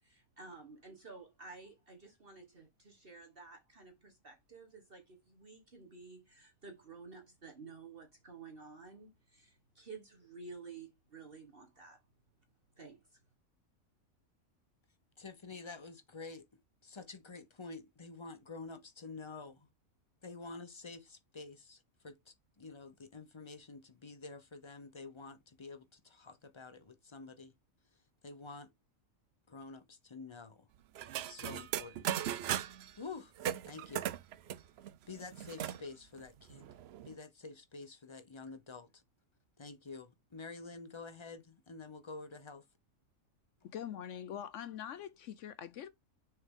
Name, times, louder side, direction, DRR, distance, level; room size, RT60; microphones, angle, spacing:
voice 1, 0.0-12.0 12.8-13.2, right 4 dB, 40° right, 1.5 m, -52 dB
voice 2, 15.2-16.4 16.8-19.7 20.2-27.5 28.2-28.7 29.5-30.7 31.1-32.1 33.0-33.3 33.6-34.1 35.1-36.7 37.0-39.0 39.6-42.6, left 4 dB, 30° left, 0.6 m, -49 dB
sound 1, 30.9-32.9 33.4-35.8 36.2-36.3 36.5-37.1, right 11 dB, 65° right, 0.7 m, -38 dB
voice 3, 43.6-45.9, left 9 dB, 70° left, 0.9 m, -43 dB
6.6 x 4.5 x 3.6 m
omnidirectional pair, 1.5 m